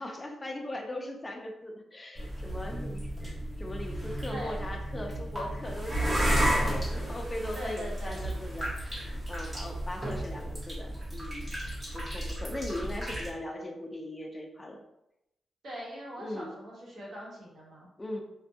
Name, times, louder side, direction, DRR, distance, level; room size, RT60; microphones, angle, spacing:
voice 1, 0.0-14.8 16.2-16.5 18.0-18.2, left 1 dB, 15° left, 2 dB, 0.3 m, -40 dB
sound 1, 2.2-13.3, right 1 dB, 20° right, 0.7 m, -33 dB
voice 2, 7.5-8.2 15.6-17.9, equal, 55° right, -5 dB, 1.0 m, -41 dB
2.5 x 2.2 x 2.6 m, 0.85 s
wide cardioid pair, 160°, 0 cm